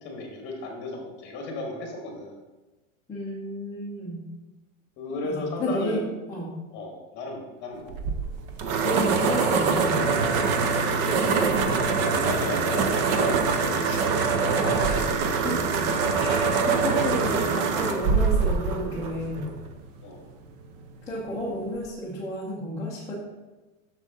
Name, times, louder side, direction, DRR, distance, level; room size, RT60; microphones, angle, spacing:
voice 1, 0.0-2.4 5.0-6.0 6.7-7.9 11.9-14.0 15.9-16.1 20.0-20.2, left 2 dB, 30° left, 0 dB, 2.0 m, -35 dB
voice 2, 3.1-4.2 5.1-6.5 8.8-10.1 14.6-15.6 16.1-19.5 21.1-23.1, equal, 5° left, -8 dB, 0.9 m, -32 dB
sound 1, 7.9-19.7, right 5 dB, 35° right, 0.6 m, -24 dB
7.3 x 6.5 x 3.9 m, 1.1 s
supercardioid pair, 160°, 39 cm